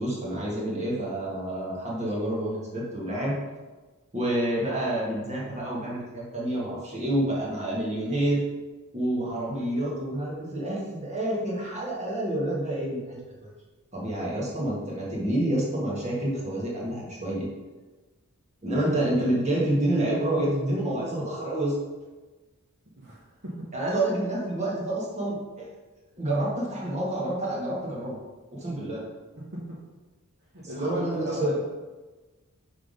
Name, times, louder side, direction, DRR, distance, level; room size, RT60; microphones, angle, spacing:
voice 1, 0.0-3.4 4.1-8.4 8.9-13.2 13.9-17.5 18.6-21.7 23.7-25.7 26.2-28.2 28.5-29.0 30.6-31.5, right 1 dB, 30° right, -5 dB, 1.6 m, -28 dB
voice 2, 23.0-23.5 29.5-29.6 30.5-31.6, right 1 dB, 50° right, -5 dB, 1.1 m, -34 dB
5.6 x 3.6 x 5.1 m, 1.2 s
head